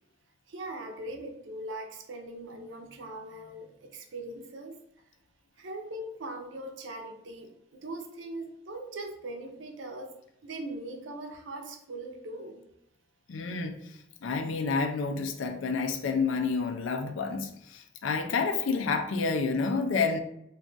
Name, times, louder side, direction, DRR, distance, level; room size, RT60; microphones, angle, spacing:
voice 1, 0.5-4.8 5.6-10.1 10.4-12.6, right 2 dB, 70° right, 0.5 m, -40 dB
voice 2, 13.3-13.8 14.2-20.2, left 4 dB, 75° left, 0.4 m, -29 dB
2.5 x 2.3 x 3.8 m
head